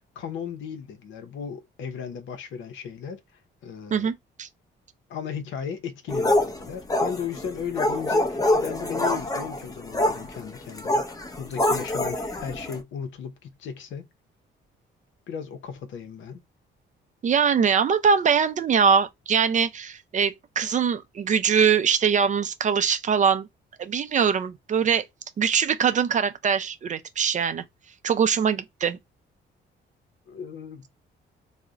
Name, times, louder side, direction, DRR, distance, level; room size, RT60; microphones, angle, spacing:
voice 1, 0.2-3.2 3.6-4.1 5.1-14.1 15.3-16.4 30.3-30.9, left 7 dB, 75° left, 0.7 m, -36 dB
voice 2, 3.9-4.5 17.2-23.5 23.8-25.0 25.4-27.6 28.0-29.0, right 6 dB, 40° right, 0.4 m, -22 dB
sound 1, 6.1-12.8, left 1 dB, 20° left, 0.6 m, -25 dB
2.3 x 2.1 x 3.8 m
cardioid pair, 90°, 20 cm